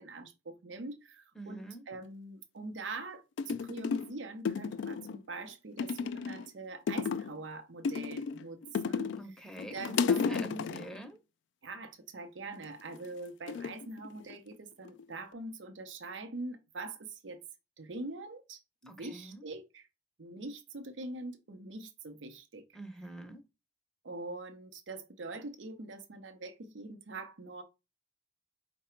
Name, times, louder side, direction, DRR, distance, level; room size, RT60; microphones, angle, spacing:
voice 1, 0.0-10.6 11.6-17.4 17.8-19.9 20.2-22.6 24.0-27.6, right 2 dB, 80° right, 0.7 m, -44 dB
voice 2, 1.4-1.8 9.2-11.2 18.9-19.4 22.7-23.4, right 1 dB, 5° left, 0.6 m, -46 dB
sound 1, 3.0-3.1 3.4-4.1 4.4-5.2 5.8-6.5 6.9-7.4 7.8-9.3 9.6-11.0 12.6-13.0 13.5-14.5 14.8-15.3, left 6 dB, 70° left, 0.3 m, -33 dB
4.8 x 2.2 x 4.3 m
head